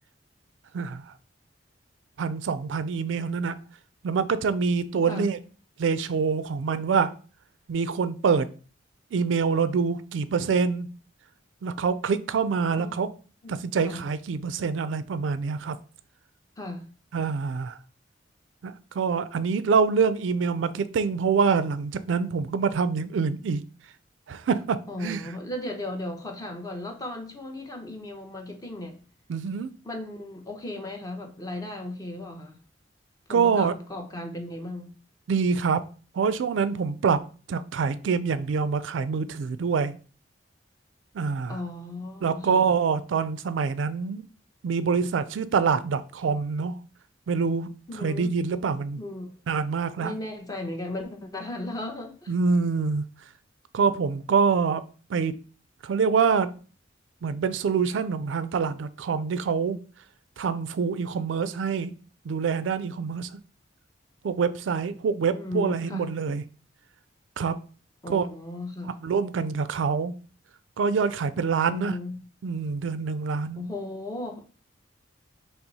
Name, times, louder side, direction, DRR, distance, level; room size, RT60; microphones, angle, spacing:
voice 1, 0.7-1.1 2.2-3.5 4.0-5.4 5.8-7.1 7.7-8.5 9.1-10.9 11.6-13.1 13.5-15.8 17.1-17.8 18.6-23.6 24.3-25.2 29.3-29.7 33.3-33.7 35.3-35.8 36.1-37.2 37.5-40.0 41.1-41.6 42.2-44.2 44.6-46.8 47.3-49.0 49.5-50.1 52.3-53.0 53.7-54.8 55.1-55.3 55.8-56.5 57.2-59.8 60.4-61.9 62.2-63.4 64.2-66.4 67.4-67.6 68.1-68.3 69.0-70.1 70.8-72.0 72.4-73.7, right 5 dB, 80° right, 0.4 m, -25 dB
voice 2, 16.6-16.9 24.9-29.0 29.8-32.6 33.3-34.9 41.5-42.7 47.9-48.3 49.0-49.3 50.0-52.3 65.3-66.2 68.0-69.0 71.7-72.2 73.5-74.5, left 2 dB, 20° left, 0.8 m, -36 dB
5.6 x 2.0 x 4.0 m
head